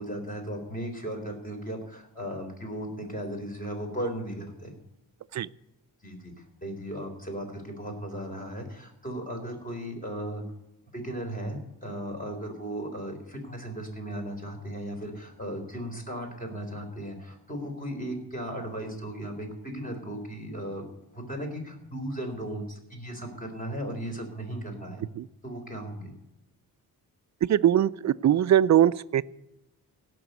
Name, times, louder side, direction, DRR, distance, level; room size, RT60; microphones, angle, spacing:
voice 1, 0.0-4.7 6.0-6.3 6.6-10.4 10.9-20.9 21.1-25.0 25.4-26.1, right 1 dB, 20° left, 3 dB, 3.7 m, -36 dB
voice 2, 27.5-29.2, right 11 dB, 45° right, 16 dB, 0.4 m, -21 dB
17.0 x 6.2 x 8.0 m, 0.87 s
cardioid pair, 95°, 39 cm